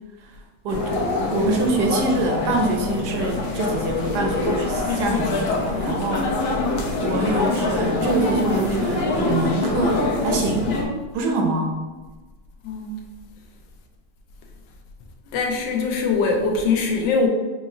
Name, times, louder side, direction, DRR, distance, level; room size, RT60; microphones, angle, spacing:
sound 1, 0.7-10.8, left 2 dB, 60° left, 1.0 m, -24 dB
voice 1, 1.3-6.3 7.0-10.8 11.1-11.8, right 2 dB, 75° right, 2 dB, 1.1 m, -25 dB
voice 2, 12.6-13.0 15.3-17.3, left 4 dB, 85° left, 2 dB, 1.3 m, -22 dB
4.6 x 2.9 x 2.6 m, 1.3 s
omnidirectional pair, 1.9 m